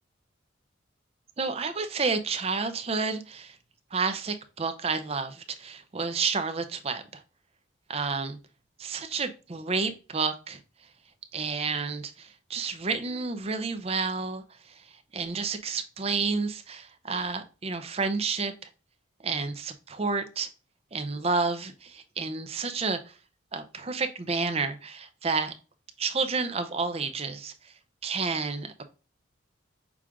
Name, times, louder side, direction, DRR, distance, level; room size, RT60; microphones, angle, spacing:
voice 1, 1.4-3.6 3.9-7.2 7.9-8.4 8.8-10.6 11.3-18.5 19.2-20.5 20.9-23.2 23.5-25.5 26.0-27.7 28.0-28.8, right 4 dB, 30° right, 8 dB, 0.5 m, -30 dB
6.1 x 2.4 x 3.5 m, 0.34 s
head